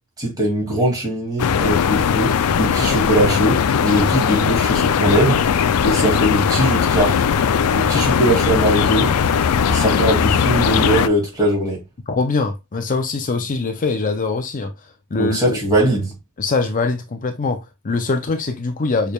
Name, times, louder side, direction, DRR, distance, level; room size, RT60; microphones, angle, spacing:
voice 1, 0.2-5.4 5.8-7.2 7.7-9.1 9.7-11.8 15.2-16.1, right 1 dB, 15° right, 2.3 m, -20 dB
sound 1, 1.4-11.1, left 7 dB, 85° left, 0.4 m, -18 dB
voice 2, 12.1-14.7 15.1-15.6 16.4-19.1, left 3 dB, 40° left, 0.5 m, -23 dB
6.5 x 3.4 x 2.3 m
head